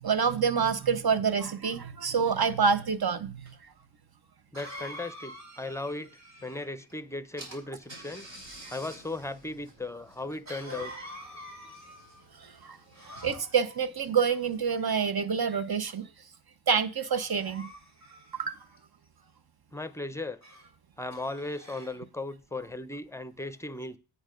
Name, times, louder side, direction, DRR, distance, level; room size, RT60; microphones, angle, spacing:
voice 1, 0.0-3.5 12.6-12.8 13.2-16.1 16.7-17.7 18.3-18.6, right 6 dB, 55° right, 0.8 m, -27 dB
Cough, 3.5-3.6 4.5-6.9 10.5-12.2 12.9-13.8 14.6-15.3 15.9-16.2 17.2-18.8 20.4-20.7 21.1-22.0, equal, 35° right, 2.1 m, -47 dB
voice 2, 4.5-8.3 8.7-10.9 19.7-20.4 21.0-24.0, left 2 dB, 5° left, 0.5 m, -37 dB
Car / Engine, 6.9-7.0 7.4-14.8, right 1 dB, 70° right, 3.4 m, -50 dB
8.7 x 5.4 x 5.1 m
wide cardioid pair, 80°, 46 cm